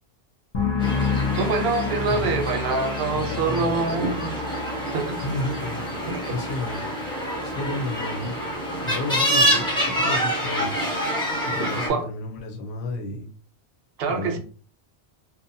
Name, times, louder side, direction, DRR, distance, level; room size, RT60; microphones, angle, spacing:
sound 1, 0.5-8.0 8.3-8.8, left 5 dB, 45° left, 0.3 m, -31 dB
sound 2, 0.8-11.9, equal, 5° left, 0.8 m, -27 dB
voice 1, 1.3-4.3 4.9-5.2 6.1-6.3 11.9-12.1 14.0-14.4, right 4 dB, 70° right, 0.7 m, -25 dB
voice 2, 2.0-2.4 2.8-4.1 5.2-6.8 7.4-8.4 8.8-10.8 11.4-13.3 14.1-14.4, left 2 dB, 75° left, 0.9 m, -32 dB
2.7 x 2.1 x 2.6 m
omnidirectional pair, 1.1 m